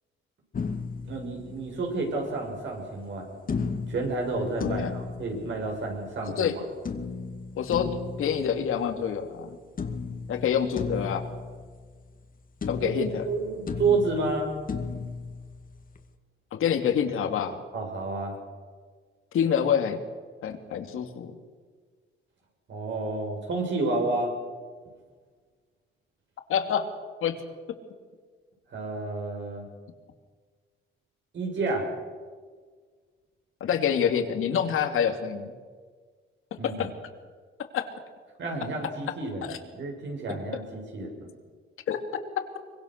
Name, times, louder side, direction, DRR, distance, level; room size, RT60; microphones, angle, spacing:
sound 1, 0.5-2.1 3.5-6.1 6.9-9.4 9.8-12.3 12.6-16.1, left 5 dB, 40° left, 2.3 m, -35 dB
voice 1, 1.1-3.4 3.9-6.6 12.8-14.5 17.7-18.4 22.7-24.3 28.7-29.7 31.3-31.9 36.6-36.9 38.4-41.3, right 3 dB, 60° right, 1 dB, 8.0 m, -30 dB
voice 2, 4.6-4.9 6.3-6.5 7.6-9.6 10.3-11.3 12.7-13.3 16.5-17.6 19.3-20.0 20.4-21.3 26.5-26.9 27.2-27.4 33.6-35.5 36.6-36.9 37.7-37.9 39.4-39.6 41.9-42.0, left 8 dB, 80° left, 6 dB, 2.8 m, -27 dB
24.5 x 24.0 x 6.7 m, 1.5 s
cardioid pair, 120°, 21 cm